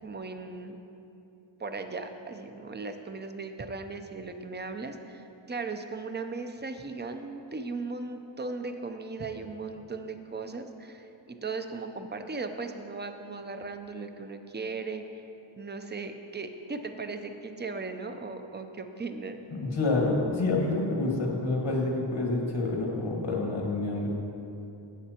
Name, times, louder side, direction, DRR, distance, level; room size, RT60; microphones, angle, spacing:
voice 1, 0.0-0.8 1.6-15.3 15.6-19.4, right 3 dB, 20° right, 7 dB, 0.6 m, -37 dB
voice 2, 19.5-24.1, left 2 dB, 80° left, -2 dB, 1.8 m, -28 dB
14.5 x 7.9 x 2.9 m, 2.9 s
wide cardioid pair, 85°, 48 cm